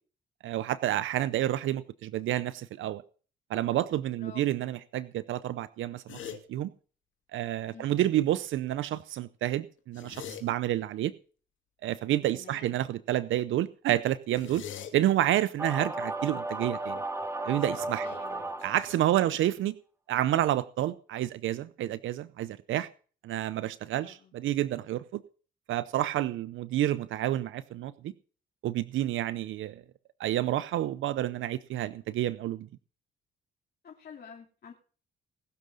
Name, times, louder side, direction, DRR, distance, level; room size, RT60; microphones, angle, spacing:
voice 1, 0.4-3.0 3.5-6.2 6.5-6.7 7.3-11.1 11.8-14.6 14.9-17.0 17.4-18.1 18.6-19.8 20.1-22.9 23.2-25.2 25.7-28.1 28.6-29.8 30.2-32.7, right 13 dB, 80° right, 0.7 m, -29 dB
voice 2, 4.1-4.5 7.7-7.9 12.3-12.7 18.0-18.5 19.2-19.5 24.0-24.3 33.8-34.7, left 6 dB, 50° left, 2.9 m, -49 dB
sound 1, 6.1-6.4 9.8-10.4 14.3-14.9 16.9-17.3 17.6-19.6, left 9 dB, 75° left, 2.8 m, -44 dB
sound 2, 15.6-19.1, right 2 dB, 15° right, 1.6 m, -34 dB
20.0 x 6.9 x 6.4 m
cardioid pair, 90°, 20 cm